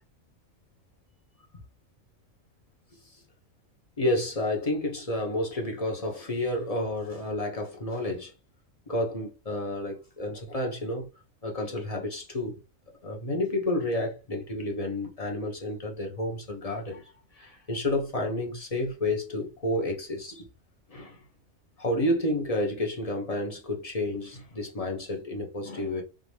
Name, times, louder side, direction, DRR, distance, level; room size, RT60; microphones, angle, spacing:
voice 1, 4.0-8.3 8.9-11.1 11.4-12.6 13.0-20.5 20.9-21.2 21.8-26.0, left 1 dB, 30° left, 1.3 m, -30 dB
3.9 x 3.7 x 3.4 m
omnidirectional pair, 1.3 m